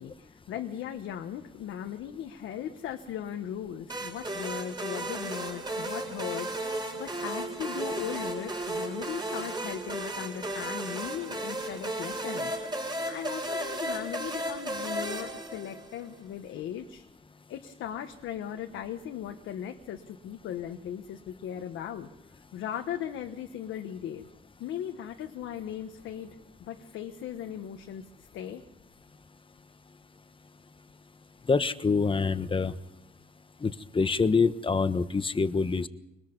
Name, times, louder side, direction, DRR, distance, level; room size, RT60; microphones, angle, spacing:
voice 1, 0.0-17.0 17.5-22.1 22.5-24.3 24.6-28.6, left 9 dB, 85° left, 4 dB, 1.4 m, -38 dB
sound 1, 3.9-16.1, right 1 dB, 20° right, 6.2 m, -34 dB
voice 2, 31.5-32.7 33.6-35.9, left 4 dB, 25° left, 11 dB, 1.3 m, -26 dB
24.5 x 20.5 x 5.4 m, 0.95 s
cardioid pair, 90°, 20 cm